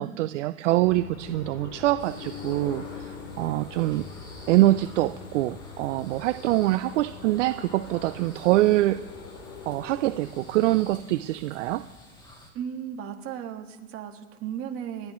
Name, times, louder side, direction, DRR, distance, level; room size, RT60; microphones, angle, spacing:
voice 1, 0.0-4.1 4.5-9.0 9.7-11.8, right 16 dB, 65° right, 12 dB, 0.6 m, -24 dB
sound 1, 0.8-10.8, left 5 dB, 75° left, 3.7 m, -43 dB
sound 2, 2.0-12.5, equal, 10° left, 2.7 m, -51 dB
voice 2, 12.5-15.1, right 9 dB, 35° right, 4 dB, 1.7 m, -35 dB
29.5 x 10.5 x 3.1 m, 1.3 s
hypercardioid pair, 130°, 41 cm